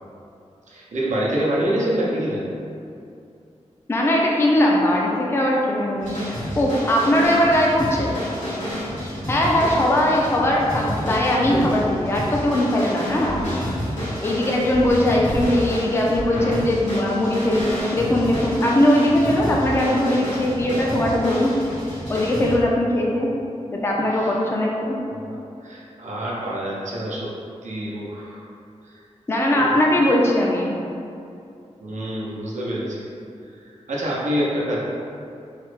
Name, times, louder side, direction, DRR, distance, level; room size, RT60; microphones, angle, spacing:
voice 1, 0.7-2.5 9.5-9.7 11.3-11.6 14.3-14.4 24.1-24.4 25.0-27.3 27.6-28.5 28.9-29.0 29.5-29.7 31.8-33.1 33.9-34.8, right 1 dB, 85° right, -5 dB, 0.6 m, -27 dB
voice 2, 3.9-8.1 9.3-13.4 14.2-21.5 22.1-23.3 23.7-25.0 29.3-30.8, left 1 dB, 20° left, -2 dB, 0.3 m, -20 dB
sound 1, 6.0-22.5, equal, 80° left, 1.1 m, -29 dB
3.1 x 2.1 x 3.1 m, 2.6 s
wide cardioid pair, 100°, 12 cm